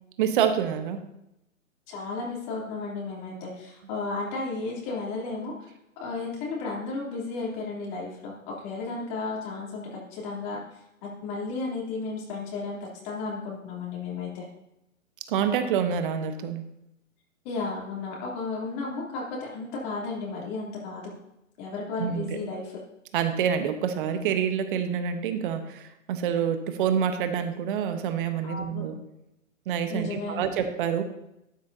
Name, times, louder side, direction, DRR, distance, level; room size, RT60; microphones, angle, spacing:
voice 1, 0.2-1.0 15.3-16.6 22.0-22.2 23.1-29.0 29.7-31.0, right 8 dB, 40° right, 8 dB, 1.2 m, -27 dB
voice 2, 1.9-5.7 6.0-10.6 11.0-14.4 17.4-21.1 21.6-22.7 28.4-28.8 29.9-30.4, left 3 dB, 35° left, -3 dB, 3.3 m, -33 dB
12.5 x 9.4 x 2.8 m, 0.86 s
hypercardioid pair, 130°, 40 cm